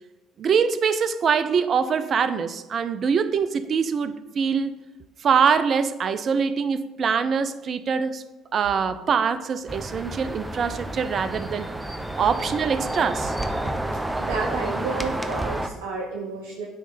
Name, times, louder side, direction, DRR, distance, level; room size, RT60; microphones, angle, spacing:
voice 1, 0.4-4.7 5.2-8.2 8.5-11.7 12.2-13.3, right 6 dB, 50° right, 12 dB, 0.6 m, -23 dB
sound 1, 9.7-15.7, right 1 dB, 10° right, 0.8 m, -30 dB
voice 2, 14.2-16.7, right 4 dB, 85° right, -1 dB, 0.8 m, -30 dB
9.7 x 3.3 x 5.5 m, 1.1 s
hypercardioid pair, 60°, 0 cm